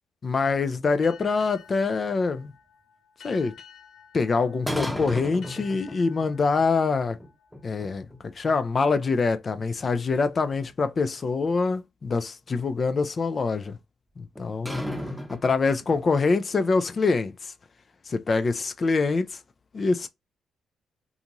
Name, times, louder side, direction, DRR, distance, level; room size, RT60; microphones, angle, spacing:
voice 1, 0.2-2.5 3.2-3.5 4.1-7.2 7.6-8.1 8.3-13.8 14.2-14.9 15.3-17.5 18.1-19.4 19.7-20.1, left 4 dB, 40° left, 0.3 m, -25 dB
sound 1, 0.8-2.1 4.7-6.3 6.6-6.7 7.2-8.2 8.5-8.6 9.1-9.2 9.6-11.0 12.5-12.6 14.4-16.1, equal, ahead, 0.7 m, -35 dB
sound 2, 1.0-8.3, left 7 dB, 75° left, 1.0 m, -52 dB
2.5 x 2.3 x 2.9 m
cardioid pair, 90°, 0 cm